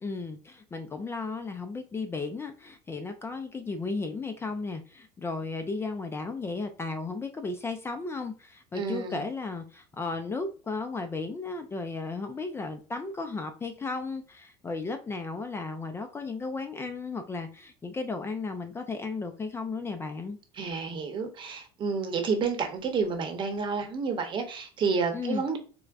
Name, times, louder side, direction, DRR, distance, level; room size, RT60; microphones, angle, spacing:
voice 1, 0.0-20.4 25.1-25.4, left 3 dB, 20° left, 0.4 m, -34 dB
voice 2, 8.7-9.3 20.6-25.6, right 5 dB, 40° right, 0.9 m, -30 dB
4.6 x 2.1 x 2.4 m
supercardioid pair, 110°, 13 cm